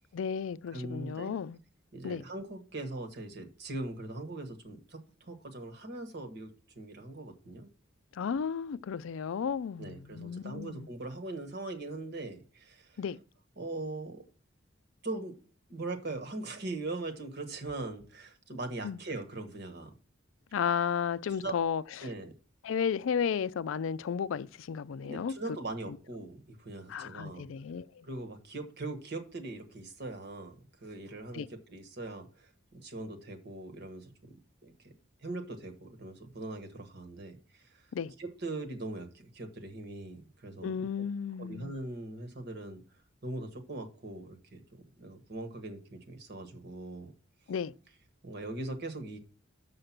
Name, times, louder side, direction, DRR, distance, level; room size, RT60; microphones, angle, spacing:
voice 1, 0.1-1.6 2.0-2.2 8.1-10.9 13.0-13.2 18.8-19.0 20.5-21.8 22.6-25.3 26.9-28.1 31.3-31.5 37.9-38.1 40.6-41.7 47.5-47.7, left 7 dB, 75° left, 0.4 m, -33 dB
voice 2, 0.7-1.4 1.9-6.5 6.8-7.7 9.8-13.0 13.6-14.3 15.0-15.3 15.7-19.9 21.4-21.6 22.0-22.3 25.0-27.5 28.0-34.3 34.6-34.9 35.2-37.9 38.2-40.8 41.4-42.8 43.2-47.1 48.2-49.2, right 2 dB, 55° right, 1.3 m, -41 dB
6.5 x 5.7 x 5.9 m
head